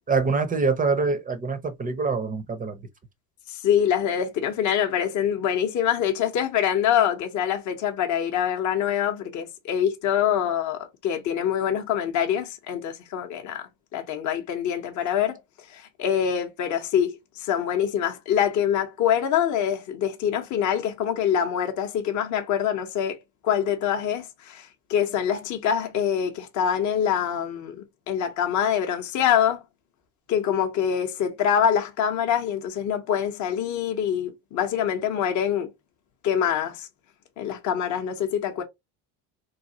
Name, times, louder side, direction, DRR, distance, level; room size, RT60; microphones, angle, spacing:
voice 1, 0.1-2.8, right 4 dB, 20° right, 0.6 m, -25 dB
voice 2, 3.5-15.4 15.7-23.2 23.4-29.6 30.3-35.7 36.2-36.9 37.4-38.6, left 9 dB, 40° left, 0.7 m, -25 dB
3.2 x 2.2 x 2.7 m
supercardioid pair, 85°, 47 cm